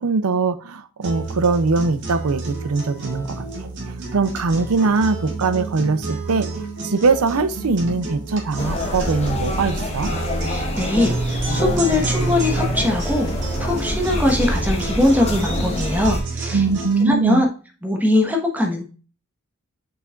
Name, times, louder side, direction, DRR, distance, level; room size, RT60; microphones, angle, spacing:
voice 1, 0.0-3.7 4.1-10.1 16.5-17.4, right 4 dB, 85° right, 12 dB, 0.6 m, -21 dB
sound 1, 1.0-17.0, right 3 dB, 55° right, 2.2 m, -29 dB
sound 2, 8.6-16.2, left 1 dB, 30° left, 1.4 m, -26 dB
voice 2, 10.5-13.3 13.6-16.6 17.0-17.5 17.8-18.8, left 1 dB, 10° right, 2 dB, 1.3 m, -21 dB
6.7 x 5.7 x 2.5 m, 0.35 s
head